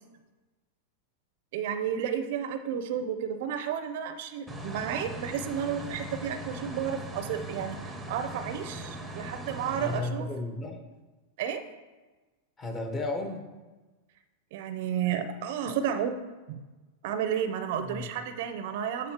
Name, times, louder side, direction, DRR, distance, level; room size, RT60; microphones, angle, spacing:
voice 1, 1.5-10.3 11.4-11.6 14.5-16.2 16.5-16.6 17.0-19.1, right 8 dB, 60° right, 9 dB, 0.5 m, -32 dB
sound 1, 4.5-10.0, right 1 dB, 5° right, 0.7 m, -39 dB
voice 2, 9.8-10.8 12.6-13.4 17.9-18.1, left 2 dB, 20° left, 3 dB, 0.9 m, -33 dB
7.9 x 5.1 x 2.9 m, 1.2 s
supercardioid pair, 140°, 0 cm